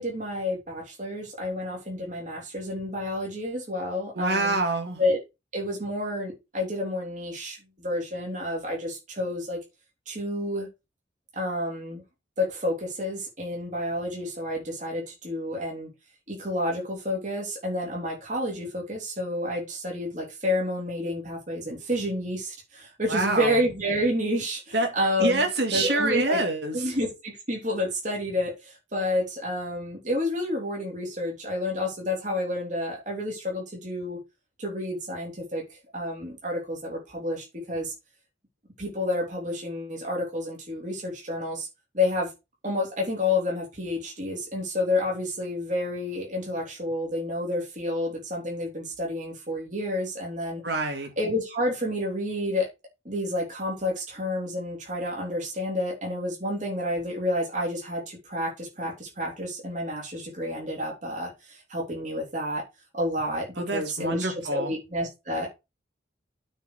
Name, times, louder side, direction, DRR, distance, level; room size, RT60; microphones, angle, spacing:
voice 1, 0.0-4.6 5.0-5.2 5.5-9.6 10.1-10.7 11.3-12.0 12.4-15.9 16.3-25.5 25.7-26.4 26.7-34.2 34.6-37.9 38.8-41.7 41.9-42.3 42.6-50.6 51.2-52.7 53.1-62.6 62.9-65.5, left 1 dB, 40° right, 3.6 m, -30 dB
voice 2, 4.2-5.0 23.1-23.5 24.7-24.9 25.2-26.8 50.6-51.1 63.6-64.7, right 2 dB, 60° right, 2.3 m, -26 dB
8.9 x 4.8 x 4.9 m
head